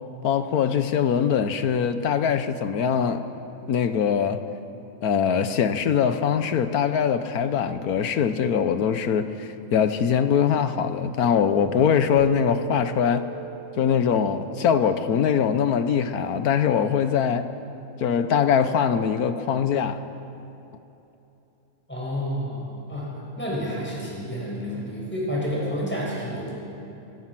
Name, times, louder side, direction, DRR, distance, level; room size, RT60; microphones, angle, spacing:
voice 1, 0.2-3.3 3.7-4.4 5.0-13.2 13.8-17.5 18.0-20.0, left 7 dB, 85° left, 10 dB, 1.5 m, -22 dB
sound 1, 12.2-15.7, right 6 dB, 25° left, 1.1 m, -38 dB
voice 2, 21.9-23.1 23.4-26.5, equal, 5° left, -5 dB, 5.9 m, -29 dB
26.5 x 17.5 x 6.1 m, 2.9 s
omnidirectional pair, 1.6 m